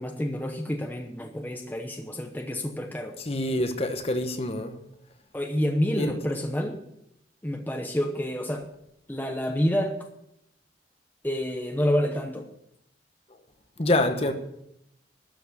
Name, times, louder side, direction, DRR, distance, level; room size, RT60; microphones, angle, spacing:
voice 1, 0.0-3.2 5.3-6.8 7.4-8.7 9.1-10.0 11.2-12.5, equal, 10° left, 0.9 m, -28 dB
voice 2, 3.2-4.7 5.9-6.1 13.8-14.3, left 1 dB, 35° left, 1.1 m, -26 dB
13.0 x 6.0 x 8.3 m
head